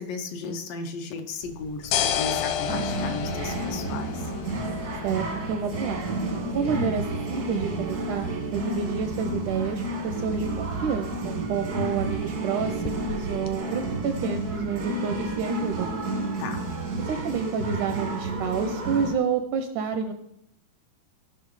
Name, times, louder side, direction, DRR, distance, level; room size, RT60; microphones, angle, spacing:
voice 1, 0.0-4.3 16.4-16.6, left 4 dB, 75° left, 4 dB, 2.6 m, -35 dB
sound 1, 1.4-13.5, left 9 dB, 90° left, 2.6 m, -34 dB
sound 2, 2.7-19.1, right 2 dB, 60° right, 1.0 m, -31 dB
voice 2, 5.0-6.0 6.5-15.9 17.1-20.1, right 6 dB, 80° right, 7 dB, 1.8 m, -29 dB
14.5 x 5.9 x 4.8 m, 0.76 s
omnidirectional pair, 4.2 m